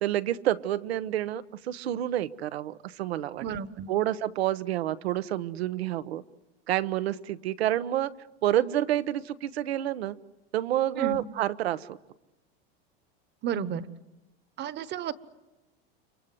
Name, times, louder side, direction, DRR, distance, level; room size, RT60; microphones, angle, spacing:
voice 1, 0.0-3.4 3.9-6.2 6.7-8.1 8.4-10.2 10.5-12.0, right 12 dB, 90° right, 14 dB, 1.1 m, -28 dB
voice 2, 3.4-3.9 10.9-11.2 13.4-13.9 14.6-15.1, right 8 dB, 35° right, 15 dB, 1.2 m, -32 dB
30.0 x 24.5 x 7.8 m, 1.0 s
supercardioid pair, 125°, 31 cm